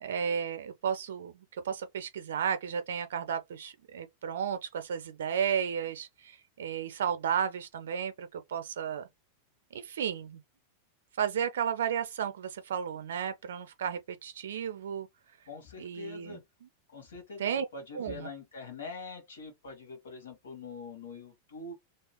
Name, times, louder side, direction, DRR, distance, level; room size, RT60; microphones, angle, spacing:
voice 1, 0.0-9.1 9.7-10.4 11.2-15.1 15.8-16.4 17.4-17.7 17.9-18.3, right 8 dB, 60° right, 0.5 m, -33 dB
voice 2, 15.5-16.4 16.9-21.8, left 4 dB, 65° left, 1.8 m, -44 dB
3.0 x 2.9 x 2.9 m
figure-of-eight pair, 90°, 0 cm